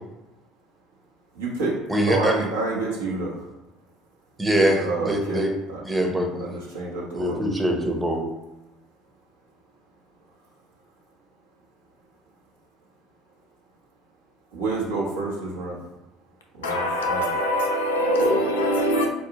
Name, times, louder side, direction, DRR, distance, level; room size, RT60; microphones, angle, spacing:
voice 1, 1.3-3.4 4.6-5.8 6.4-7.5 14.5-15.9 16.6-17.3, right 3 dB, 80° right, 1.0 m, -29 dB
voice 2, 1.9-2.3 4.4-4.8 5.1-5.5 5.9-6.3 7.1-8.3, right 1 dB, 15° right, 0.7 m, -22 dB
voice 3, 16.6-19.1, equal, 80° left, 0.5 m, -23 dB
3.8 x 2.6 x 2.8 m
figure-of-eight pair, 60°, 0 cm